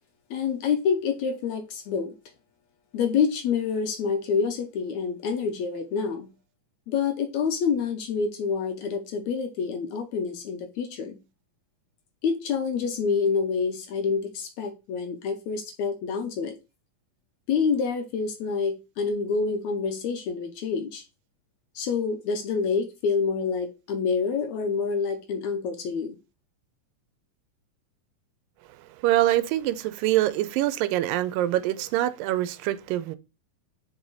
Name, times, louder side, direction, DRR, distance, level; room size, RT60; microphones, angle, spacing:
voice 1, 0.3-2.1 2.9-6.3 6.9-11.2 12.2-16.6 17.5-21.0 21.8-26.2, left 5 dB, 70° left, 1.9 m, -27 dB
voice 2, 29.0-33.2, right 14 dB, 85° right, 2.3 m, -24 dB
5.7 x 4.9 x 3.9 m
omnidirectional pair, 3.9 m